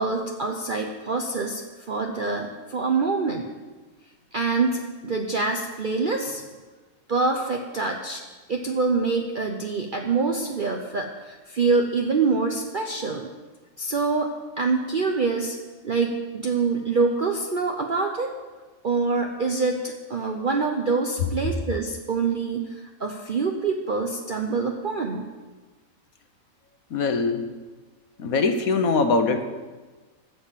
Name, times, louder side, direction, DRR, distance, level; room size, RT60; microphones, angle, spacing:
voice 1, 0.0-3.5 4.3-6.4 7.1-8.2 8.5-13.3 13.8-14.3 14.6-15.6 15.8-18.3 18.8-25.2, right 4 dB, 40° right, 2 dB, 0.9 m, -25 dB
voice 2, 26.9-27.5 28.2-29.5, left 4 dB, 75° left, 7 dB, 1.5 m, -22 dB
13.5 x 7.1 x 7.4 m, 1.3 s
omnidirectional pair, 1.5 m